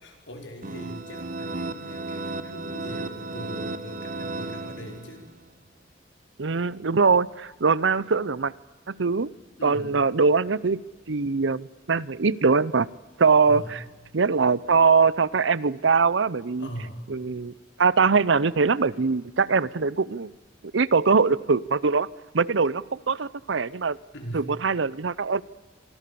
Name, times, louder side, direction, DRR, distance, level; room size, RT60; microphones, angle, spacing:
voice 1, 0.0-5.3 9.6-10.0 13.4-13.8 16.6-17.0 24.1-24.4, equal, 85° left, 3 dB, 5.2 m, -40 dB
sound 1, 0.6-5.4, right 2 dB, 45° right, 1.3 m, -34 dB
voice 2, 6.4-8.5 8.9-9.3 9.6-10.8 11.1-12.9 13.2-13.8 14.1-16.7 17.1-17.5 17.8-20.3 20.7-22.1 22.3-24.0 24.3-25.4, right 4 dB, 90° right, 21 dB, 0.7 m, -22 dB
26.5 x 24.5 x 7.0 m, 1.3 s
head